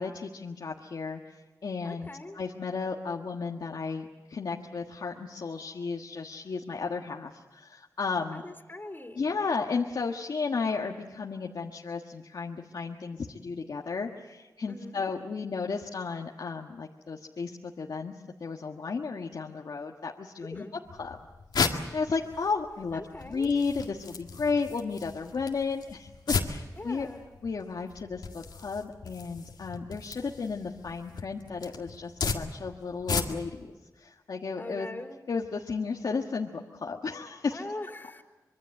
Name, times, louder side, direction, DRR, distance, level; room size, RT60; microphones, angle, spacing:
voice 1, 0.0-2.1 2.3-8.4 9.2-20.7 21.0-21.2 21.7-27.1 27.4-34.9 35.3-37.6, left 4 dB, 70° left, 1 dB, 1.5 m, -33 dB
voice 2, 1.8-2.4 8.3-9.2 14.7-15.0 20.4-20.7 22.9-23.5 26.8-27.2 34.5-35.2 37.5-38.2, left 2 dB, 30° left, 2 dB, 3.3 m, -41 dB
sound 1, 20.9-33.6, left 5 dB, 85° left, 2.0 m, -36 dB
25.0 x 23.0 x 7.8 m, 1.2 s
cardioid pair, 60°, 7 cm